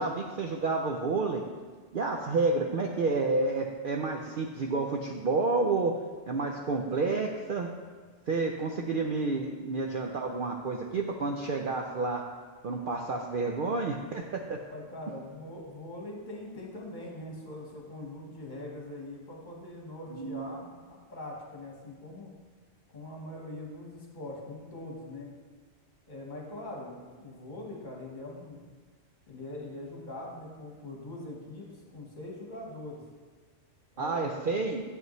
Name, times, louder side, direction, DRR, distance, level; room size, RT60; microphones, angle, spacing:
voice 1, 0.0-1.4 1.9-6.0 6.3-7.7 8.3-12.2 12.6-14.6 20.1-20.5 34.0-34.8, right 3 dB, 60° right, 1 dB, 0.6 m, -30 dB
voice 2, 14.6-22.3 22.9-25.3 26.1-28.6 29.3-33.0 33.9-34.6, left 1 dB, 40° left, -2 dB, 1.4 m, -42 dB
8.0 x 7.8 x 3.1 m, 1.4 s
omnidirectional pair, 1.3 m